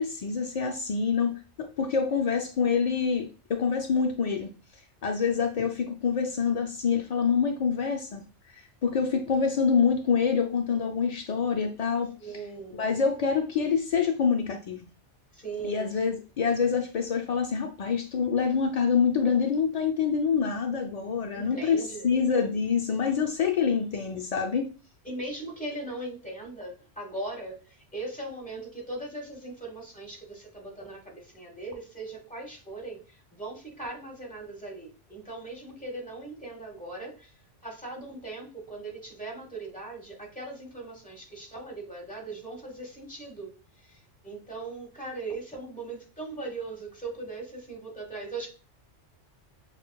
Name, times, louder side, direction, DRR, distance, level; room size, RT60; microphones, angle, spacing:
voice 1, 0.0-1.3 1.6-4.5 5.0-8.2 8.8-12.1 12.8-14.9 15.6-24.7, left 6 dB, 75° left, 3 dB, 0.3 m, -26 dB
voice 2, 12.2-12.9 15.3-15.9 21.3-22.1 25.0-43.5 43.8-48.5, right 2 dB, 5° left, 0 dB, 1.1 m, -39 dB
6.3 x 2.3 x 2.2 m, 0.33 s
omnidirectional pair, 1.2 m